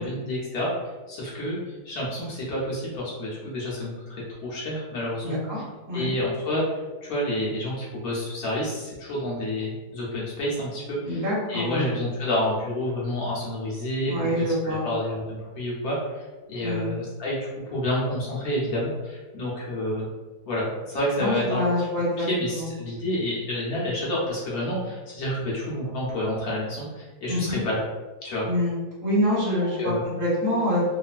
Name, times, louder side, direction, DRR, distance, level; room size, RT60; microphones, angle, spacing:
voice 1, 0.0-5.6 5.9-11.2 11.5-14.3 14.6-20.1 20.5-21.9 22.2-27.8 28.2-28.5 29.6-30.0, left 1 dB, 70° left, -6 dB, 1.2 m, -29 dB
voice 2, 5.2-5.6 5.9-6.1 11.0-11.9 14.1-14.8 16.6-16.9 21.2-22.7 27.3-27.6 28.4-28.7 29.0-29.9 30.2-30.8, left 1 dB, 15° right, -8 dB, 0.7 m, -25 dB
3.0 x 2.5 x 2.5 m, 1.3 s
omnidirectional pair, 1.7 m